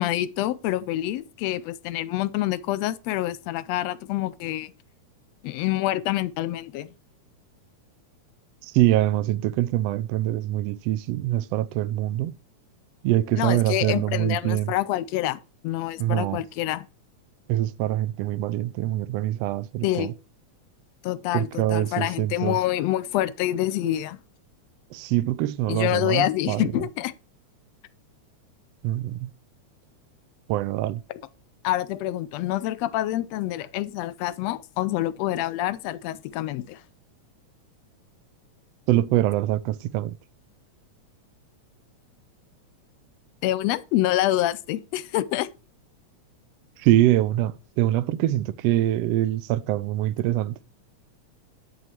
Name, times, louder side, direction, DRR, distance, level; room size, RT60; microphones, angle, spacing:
voice 1, 0.0-4.7 5.4-6.9 13.4-16.9 19.8-20.1 21.0-24.2 25.7-27.1 31.1-31.2 31.6-36.8 43.4-45.5, left 14 dB, 75° left, 1.7 m, -27 dB
voice 2, 8.6-12.3 13.0-14.7 16.0-16.4 17.5-20.1 21.3-22.6 24.9-26.6 28.8-29.3 30.5-31.0 38.9-40.1 46.8-50.6, right 14 dB, 75° right, 1.6 m, -24 dB
11.0 x 7.0 x 4.4 m
omnidirectional pair, 3.3 m